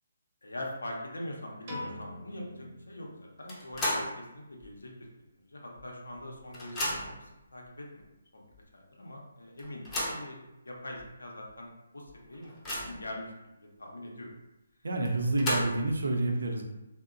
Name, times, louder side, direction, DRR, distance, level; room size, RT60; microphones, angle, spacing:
voice 1, 0.4-4.9 5.4-8.0 8.3-8.4 8.7-11.7 11.9-13.3 13.6-14.3 15.2-15.5, left 1 dB, 90° left, -1 dB, 0.6 m, -43 dB
Piano, 1.7-3.9, left 1 dB, 40° right, 0.8 m, -44 dB
sound 1, 3.5-4.2 4.6-4.7 5.8-5.9 6.2-7.3 8.0-8.1 8.5-8.6 9.6-10.3 11.0-11.1 11.5-11.6 12.1-13.1 15.1-16.0, left 1 dB, 15° left, 0.5 m, -34 dB
voice 2, 14.8-16.6, right 2 dB, 75° right, 1 dB, 0.5 m, -28 dB
2.8 x 2.1 x 2.4 m, 0.95 s
figure-of-eight pair, 150°, 0 cm